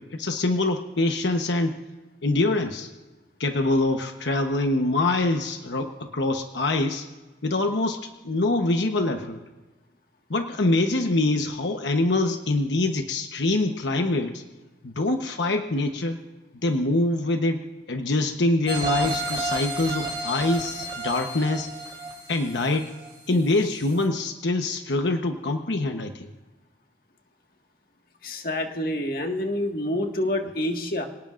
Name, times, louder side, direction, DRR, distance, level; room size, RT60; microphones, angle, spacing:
voice 1, 0.0-1.7 2.2-2.9 3.4-7.1 7.4-9.4 10.3-14.4 14.8-16.2 16.6-17.6 17.9-21.7 22.3-22.9 23.3-26.3, left 2 dB, 90° left, 5 dB, 1.0 m, -24 dB
sound 1, 18.7-23.4 23.8-23.9, right 1 dB, 30° right, 3.3 m, -31 dB
voice 2, 28.2-31.1, left 1 dB, 55° left, 3 dB, 1.8 m, -27 dB
26.5 x 18.0 x 2.5 m, 1.2 s
head